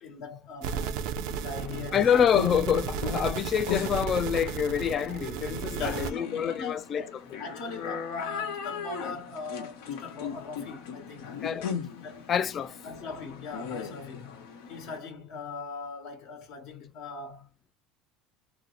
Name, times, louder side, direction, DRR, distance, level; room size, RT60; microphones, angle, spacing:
voice 1, 0.0-1.1 1.4-2.2 5.7-11.4 12.0-12.3 12.8-14.3 14.7-17.7, left 4 dB, 65° left, 1.2 m, -40 dB
sound 1, 0.6-6.1, right 7 dB, 70° right, 0.5 m, -34 dB
sound 2, 1.3-15.0, left 7 dB, 85° left, 1.0 m, -38 dB
voice 2, 1.9-7.0 11.4-11.7 12.3-12.8, left 8 dB, 35° left, 0.4 m, -26 dB
2.9 x 2.0 x 3.9 m
supercardioid pair, 125°, 0 cm